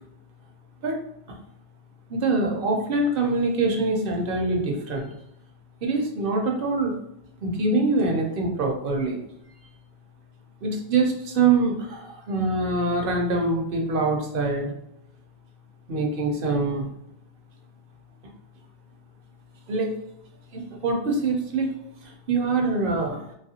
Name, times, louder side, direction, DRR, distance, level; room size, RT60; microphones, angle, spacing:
voice 1, 2.1-5.1 5.8-7.0 7.4-9.2 10.6-14.7 15.9-16.9 19.7-19.9 20.5-21.7 22.0-23.3, right 3 dB, 60° right, 1 dB, 0.8 m, -24 dB
3.0 x 2.4 x 2.7 m, 0.76 s
omnidirectional pair, 1.1 m